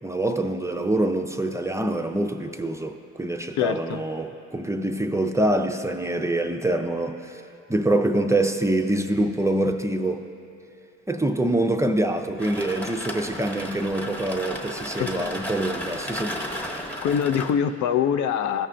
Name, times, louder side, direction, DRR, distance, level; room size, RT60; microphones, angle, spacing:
voice 1, 0.0-7.4 7.7-10.2 11.1-16.4, right 1 dB, 10° right, 4 dB, 0.4 m, -25 dB
voice 2, 3.6-4.0 15.0-15.4 17.0-18.7, left 8 dB, 70° left, 10 dB, 0.4 m, -24 dB
sound 1, 12.4-17.5, equal, 5° left, 0.8 m, -34 dB
16.0 x 5.4 x 2.5 m, 2.7 s
cardioid pair, 90°, 30 cm